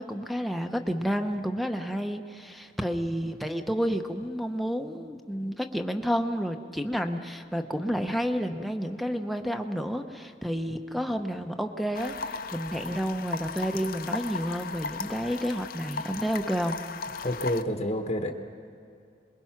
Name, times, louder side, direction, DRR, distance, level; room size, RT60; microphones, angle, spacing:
voice 1, 0.0-16.8, equal, ahead, 4 dB, 0.8 m, -30 dB
sound 1, 11.9-17.6, left 5 dB, 55° left, 0.7 m, -37 dB
voice 2, 17.2-18.3, left 1 dB, 35° left, 4 dB, 1.0 m, -28 dB
27.0 x 21.5 x 5.9 m, 2.4 s
head